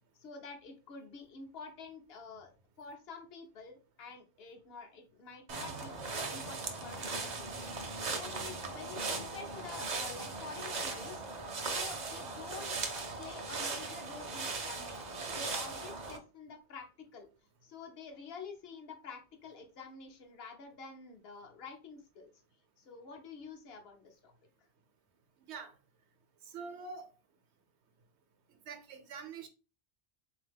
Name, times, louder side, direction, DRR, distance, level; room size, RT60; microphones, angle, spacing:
voice 1, 0.1-2.5 2.8-11.2 11.6-17.3 17.6-22.3 22.8-24.3, left 5 dB, 60° left, 1.0 m, -49 dB
sound 1, 5.5-16.2, right 3 dB, 45° right, 0.7 m, -38 dB
voice 2, 26.5-27.1 28.7-29.5, right 5 dB, 70° right, 0.9 m, -44 dB
3.8 x 2.8 x 3.4 m
omnidirectional pair, 1.2 m